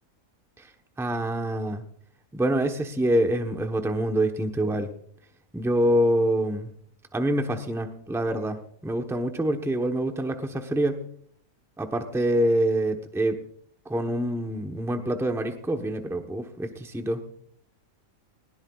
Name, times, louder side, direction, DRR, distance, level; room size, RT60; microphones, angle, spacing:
voice 1, 1.0-1.8 2.3-4.9 5.5-6.7 7.1-8.6 8.8-11.0 11.8-13.4 13.8-17.2, right 1 dB, ahead, 5 dB, 0.9 m, -26 dB
19.0 x 16.5 x 2.4 m, 0.63 s
omnidirectional pair, 1.4 m